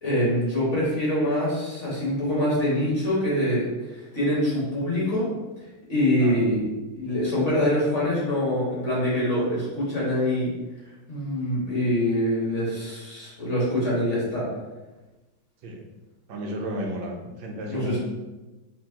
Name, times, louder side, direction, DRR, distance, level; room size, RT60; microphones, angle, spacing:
voice 1, 0.0-5.3 5.9-6.6 6.9-10.5 11.1-14.5 17.7-18.0, left 1 dB, 40° left, -7 dB, 1.8 m, -24 dB
voice 2, 16.3-18.0, right 1 dB, 85° right, 0 dB, 1.5 m, -33 dB
4.4 x 3.8 x 2.8 m, 1.1 s
omnidirectional pair, 2.1 m